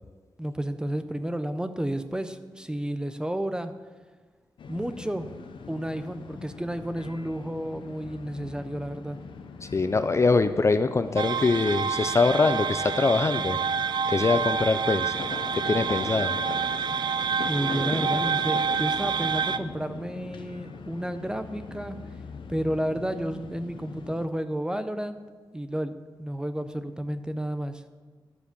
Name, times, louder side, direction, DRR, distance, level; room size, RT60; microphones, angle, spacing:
voice 1, 0.4-3.7 4.7-5.3 5.7-9.2 17.5-22.0 22.5-25.2 25.5-27.9, right 1 dB, 10° right, 10 dB, 0.6 m, -31 dB
sound 1, 4.6-24.3, left 5 dB, 90° left, 0.6 m, -41 dB
voice 2, 9.7-13.6 14.1-15.1 15.5-16.4, left 3 dB, 35° left, 10 dB, 0.4 m, -23 dB
sound 2, 11.2-19.6, right 6 dB, 65° right, 0.4 m, -28 dB
11.5 x 4.7 x 6.8 m, 1.5 s
wide cardioid pair, 95°, 8 cm